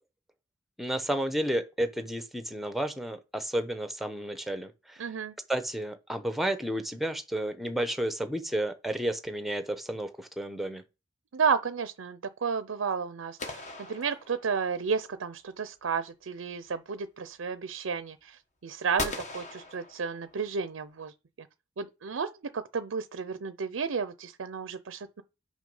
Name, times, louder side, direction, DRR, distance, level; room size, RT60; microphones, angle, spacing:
voice 1, 0.8-5.0 5.5-10.8, right 1 dB, ahead, 0.8 m, -32 dB
voice 2, 5.0-5.3 11.3-21.5 21.8-25.2, right 5 dB, 70° right, 0.5 m, -32 dB
sound 1, 13.4-14.9 19.0-20.6, left 2 dB, 35° left, 1.2 m, -38 dB
6.3 x 5.3 x 5.4 m
head